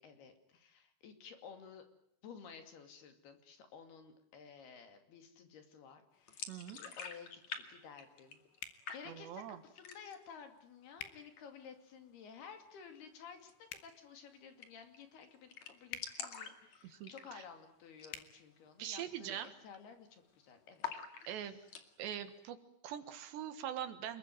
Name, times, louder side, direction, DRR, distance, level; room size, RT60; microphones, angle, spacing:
voice 1, 0.0-1.9 2.2-6.5 6.8-8.4 8.9-20.9 21.2-21.7, left 6 dB, 60° left, 7 dB, 4.3 m, -54 dB
sound 1, 6.3-7.6 7.9-8.6 8.9-9.4 9.8-10.3 10.6-10.7 11.0-11.7 13.4-13.5 13.8-13.9 14.2-14.3 14.6-15.0 15.2-15.3 15.5-17.6 17.9-18.2 18.5-18.6 19.2-19.5 19.7-20.3 20.8-21.9, left 7 dB, 45° left, 2.9 m, -46 dB
voice 2, 6.5-6.8 9.1-9.6 16.8-17.4 18.8-19.5 21.3-21.6 22.0-24.2, right 10 dB, 75° right, 10 dB, 3.6 m, -43 dB
sound 2, 8.6-8.8 11.0-11.2 13.6-13.9 15.9-16.1 18.1-18.3, left 10 dB, 80° left, 4.0 m, -45 dB
27.5 x 22.0 x 9.3 m, 0.73 s
omnidirectional pair, 5.2 m